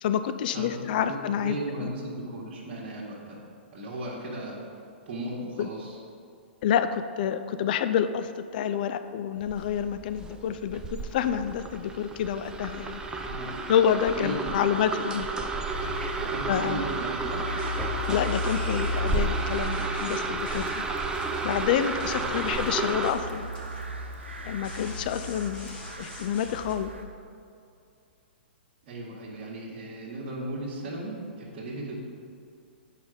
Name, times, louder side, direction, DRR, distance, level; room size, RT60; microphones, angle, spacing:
voice 1, 0.0-1.9 5.6-5.7 6.6-13.0 13.7-15.3 16.5-16.8 18.1-20.7 21.4-23.5 24.4-26.9, left 9 dB, 50° left, 10 dB, 0.4 m, -28 dB
voice 2, 0.5-3.4 3.7-4.6 5.0-6.0 13.2-13.6 14.1-14.6 16.2-17.5 22.0-22.4 28.8-31.9, right 1 dB, 50° right, -7 dB, 1.8 m, -36 dB
sound 1, 9.4-23.1, right 3 dB, 10° right, 0.6 m, -32 dB
sound 2, 15.7-27.0, left 1 dB, 85° right, 0.9 m, -36 dB
sound 3, 17.5-26.8, left 1 dB, 20° left, 1.6 m, -46 dB
8.1 x 5.2 x 5.1 m, 2.4 s
hypercardioid pair, 120°, 6 cm